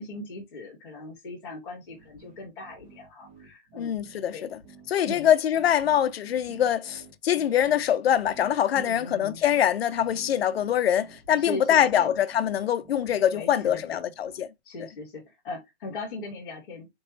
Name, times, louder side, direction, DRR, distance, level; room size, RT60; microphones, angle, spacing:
voice 1, 0.0-4.0 4.3-4.5 5.0-5.3 8.7-9.4 11.4-12.1 13.3-14.1 14.6-16.9, left 2 dB, 5° left, 0.5 m, -39 dB
sound 1, 1.9-14.4, right 5 dB, 40° right, 1.5 m, -52 dB
voice 2, 3.8-4.6 4.9-14.5, left 10 dB, 65° left, 0.6 m, -24 dB
4.4 x 2.9 x 3.1 m
hypercardioid pair, 180°, 33 cm